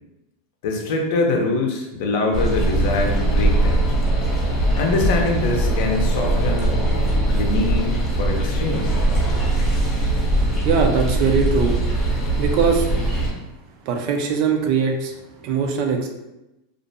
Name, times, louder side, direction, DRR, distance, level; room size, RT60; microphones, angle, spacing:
voice 1, 0.6-3.9 4.7-6.7 7.3-9.0, left 3 dB, 60° left, 1 dB, 0.6 m, -23 dB
sound 1, 2.3-13.3, right 1 dB, 25° left, 0.8 m, -21 dB
voice 2, 10.6-11.8 12.3-13.1 13.8-15.1 15.4-16.1, right 5 dB, 50° right, 3 dB, 0.4 m, -21 dB
2.4 x 2.1 x 2.7 m, 0.93 s
supercardioid pair, 145°, 0 cm